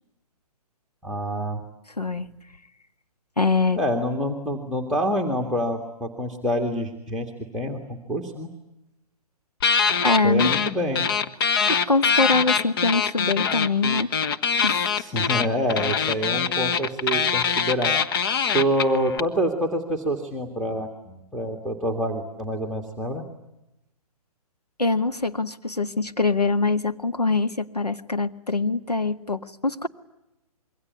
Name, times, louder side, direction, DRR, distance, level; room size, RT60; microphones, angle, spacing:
voice 1, 1.0-1.6 3.8-7.3 7.5-7.8 8.1-8.5 10.2-11.0 15.0-17.9 18.5-23.2, equal, ahead, 0 dB, 2.0 m, -26 dB
voice 2, 3.4-3.8 10.0-10.5 11.7-14.1 14.6-14.9 24.8-29.9, left 3 dB, 85° left, 7 dB, 1.7 m, -23 dB
sound 1, 9.6-10.7 11.0-19.2, left 6 dB, 35° left, 1.3 m, -23 dB
26.5 x 23.0 x 9.6 m, 0.91 s
figure-of-eight pair, 130°, 20 cm